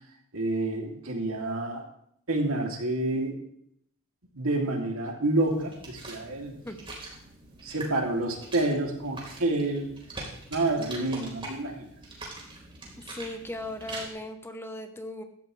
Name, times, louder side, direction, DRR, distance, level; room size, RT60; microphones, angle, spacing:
voice 1, 0.3-1.8 2.3-3.4 4.3-6.5 7.6-9.9 10.5-11.9, right 2 dB, 65° right, 1 dB, 2.9 m, -28 dB
sound 1, 5.4-14.1, right 2 dB, 25° right, 4.0 m, -43 dB
voice 2, 13.0-15.2, left 1 dB, 10° left, 6 dB, 0.9 m, -37 dB
16.5 x 13.0 x 3.3 m, 0.70 s
head